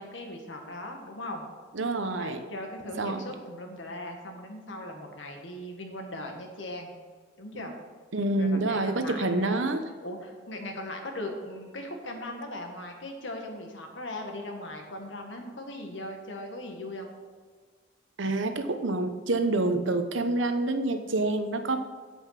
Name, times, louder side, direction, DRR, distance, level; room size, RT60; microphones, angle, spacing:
voice 1, 0.0-1.5 2.1-6.9 7.4-7.7 8.4-9.5 10.0-17.1, left 1 dB, 70° left, 3 dB, 1.8 m, -39 dB
voice 2, 1.7-2.4 3.0-3.2 7.5-7.7 8.1-9.9 18.2-21.8, right 2 dB, 80° right, 8 dB, 0.9 m, -27 dB
8.2 x 8.0 x 5.9 m, 1.5 s
head